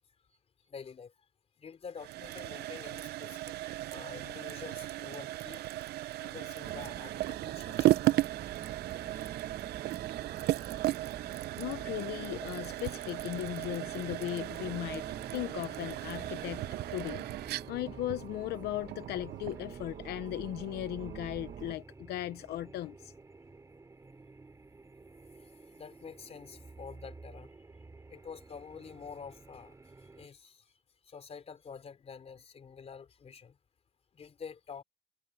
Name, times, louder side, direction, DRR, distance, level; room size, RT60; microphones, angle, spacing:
voice 1, 0.6-1.1 1.6-3.5 3.8-5.6 6.2-8.2 9.2-9.3 14.9-15.0 25.7-27.5 28.1-29.7 30.2-30.7 31.1-33.6 34.1-34.8, left 6 dB, 35° left, 3.7 m, -48 dB
sound 1, 2.0-19.7, right 15 dB, 70° right, 0.7 m, -35 dB
sound 2, 6.6-21.7, right 9 dB, 50° right, 1.5 m, -46 dB
voice 2, 11.6-15.1 15.3-16.6 16.9-23.1, left 14 dB, 75° left, 0.9 m, -37 dB
sound 3, 11.8-30.3, right 3 dB, 20° right, 4.8 m, -52 dB
cardioid pair, 110°, 17 cm